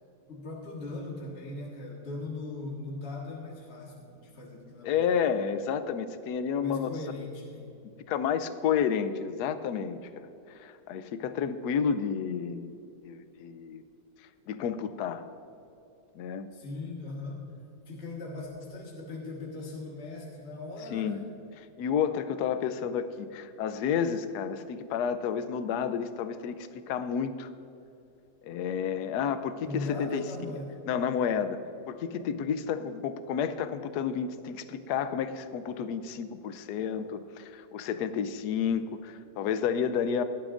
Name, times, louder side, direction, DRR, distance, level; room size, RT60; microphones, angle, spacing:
voice 1, 0.3-5.2 6.6-7.7 16.5-17.4 17.9-21.4 29.6-30.8, left 2 dB, 35° left, -4 dB, 1.8 m, -39 dB
voice 2, 4.8-6.9 8.1-12.7 13.0-13.8 14.5-15.2 16.2-16.5 20.9-21.2 21.6-27.5 28.4-30.2 30.9-31.6 31.9-40.2, left 7 dB, 70° left, 11 dB, 1.1 m, -31 dB
17.5 x 12.0 x 2.5 m, 2.9 s
omnidirectional pair, 1.9 m